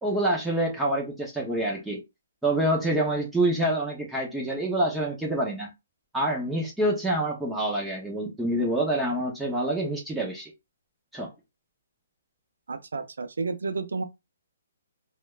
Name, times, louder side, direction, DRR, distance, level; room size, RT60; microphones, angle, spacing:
voice 1, 0.0-2.0 2.4-5.7 6.1-10.5 11.1-11.3, right 1 dB, 5° right, 0.6 m, -26 dB
voice 2, 12.7-14.0, right 4 dB, 90° right, 0.5 m, -31 dB
3.1 x 2.2 x 2.3 m
hypercardioid pair, 160°, 0 cm